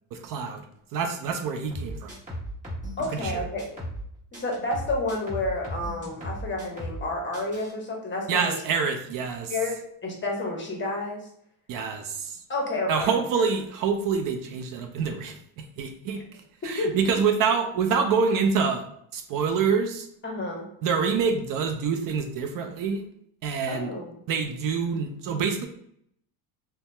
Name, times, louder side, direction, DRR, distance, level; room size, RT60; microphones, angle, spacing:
voice 1, 0.1-0.6 0.9-2.1 3.1-3.4 8.3-9.5 11.7-12.4 12.9-16.2 16.6-18.8 19.1-20.1 20.8-23.0 23.4-23.9 24.3-25.7, right 5 dB, 55° right, 5 dB, 0.5 m, -26 dB
sound 1, 1.7-4.1 4.3-7.1 7.3-7.7, equal, 20° right, 1.3 m, -36 dB
voice 2, 3.0-3.8 4.3-8.6 9.5-11.3 12.5-13.2 16.6-16.9 20.2-20.7 23.7-24.1, left 2 dB, 30° left, 0 dB, 0.8 m, -30 dB
2.7 x 2.1 x 3.2 m, 0.70 s
cardioid pair, 105°, 41 cm